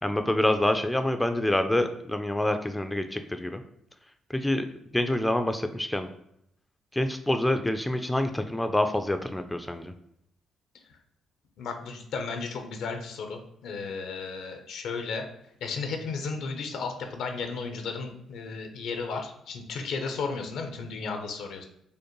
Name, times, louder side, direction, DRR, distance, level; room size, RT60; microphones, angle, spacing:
voice 1, 0.0-3.6 4.3-4.7 4.9-6.1 6.9-9.9, left 1 dB, 10° left, 7 dB, 0.3 m, -26 dB
voice 2, 11.6-15.2 15.6-21.7, left 4 dB, 80° left, 5 dB, 0.6 m, -34 dB
5.1 x 2.1 x 3.0 m, 0.75 s
cardioid pair, 90°, 0 cm